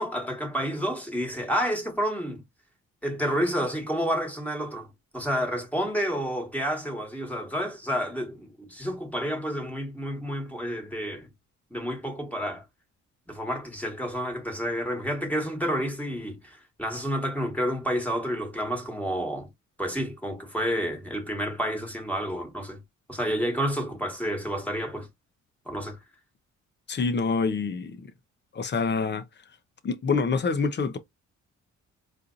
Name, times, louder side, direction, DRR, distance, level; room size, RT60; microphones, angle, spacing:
voice 1, 0.0-2.4 3.0-4.9 5.1-11.3 11.7-12.6 13.3-19.5 19.8-22.8 23.1-25.1 25.7-26.0, equal, 5° left, 1.5 m, -30 dB
voice 2, 26.9-28.1 28.5-29.2 29.8-31.0, left 4 dB, 35° left, 0.7 m, -26 dB
4.3 x 2.5 x 2.5 m
cardioid pair, 90°, 30 cm